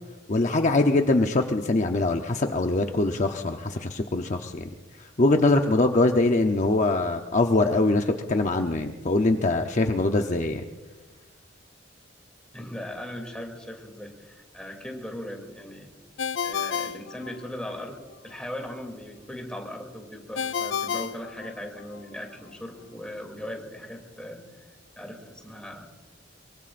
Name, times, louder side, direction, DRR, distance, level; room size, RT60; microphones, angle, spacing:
voice 1, 0.3-4.7 5.2-10.6, left 2 dB, 40° left, 4 dB, 0.8 m, -23 dB
voice 2, 12.5-15.9 16.4-18.0 18.2-24.4 25.0-25.9, left 1 dB, 5° left, 1 dB, 2.8 m, -38 dB
Ringtone, 16.2-17.9 20.4-22.0, left 7 dB, 85° left, 0.4 m, -31 dB
23.5 x 23.5 x 2.6 m, 1.3 s
head